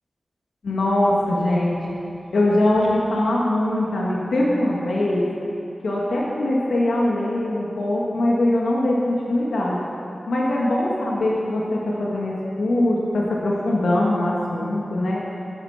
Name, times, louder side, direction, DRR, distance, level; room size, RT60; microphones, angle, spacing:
voice 1, 0.6-1.8 2.3-5.2 5.8-9.8 10.3-15.2, left 1 dB, 85° left, -4 dB, 1.9 m, -22 dB
11.5 x 11.5 x 5.9 m, 2.7 s
wide cardioid pair, 110°, 0 cm